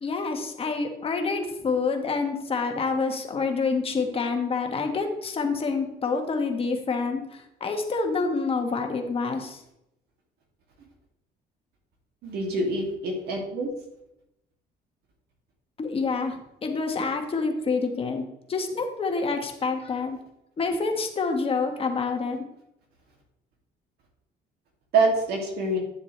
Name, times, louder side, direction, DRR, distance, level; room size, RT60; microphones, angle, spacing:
voice 1, 0.0-9.6 15.8-18.2 18.5-20.2 20.6-22.4, left 4 dB, 35° left, 4 dB, 1.5 m, -27 dB
voice 2, 12.2-13.7 24.9-25.8, right 3 dB, 70° right, 0 dB, 2.7 m, -25 dB
11.0 x 7.1 x 3.3 m, 0.83 s
cardioid pair, 110°, 17 cm